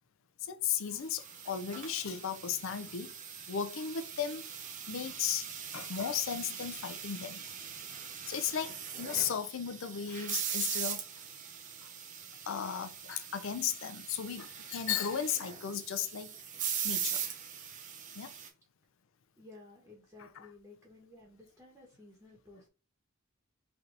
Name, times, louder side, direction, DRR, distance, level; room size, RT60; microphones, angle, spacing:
voice 1, 0.4-3.1 3.5-4.4 4.9-5.5 5.7-7.4 8.3-11.0 11.8-11.9 12.5-16.3 16.8-17.2 18.1-18.3 20.2-20.5, left 8 dB, 70° left, 0.5 m, -35 dB
sound 1, 1.0-18.5, right 7 dB, 40° right, 0.7 m, -41 dB
voice 2, 19.4-22.7, left 2 dB, 10° right, 1.1 m, -55 dB
3.3 x 2.8 x 3.8 m
head